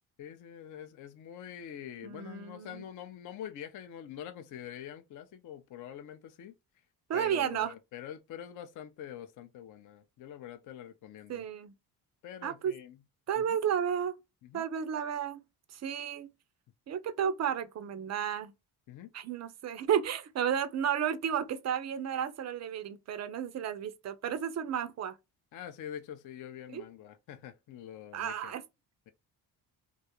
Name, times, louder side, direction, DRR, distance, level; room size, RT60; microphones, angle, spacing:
voice 1, 0.2-6.5 7.1-11.5 12.2-13.0 13.4-13.6 14.4-14.6 18.9-19.1 25.5-28.5, left 10 dB, 40° left, 0.5 m, -45 dB
voice 2, 2.0-2.8 7.1-7.7 11.3-11.7 12.4-12.7 13.3-14.1 14.5-15.4 15.7-16.3 16.9-18.5 19.1-25.2 26.7-26.8 28.1-28.6, right 8 dB, 35° right, 0.4 m, -32 dB
2.4 x 2.3 x 2.8 m
hypercardioid pair, 55°, 48 cm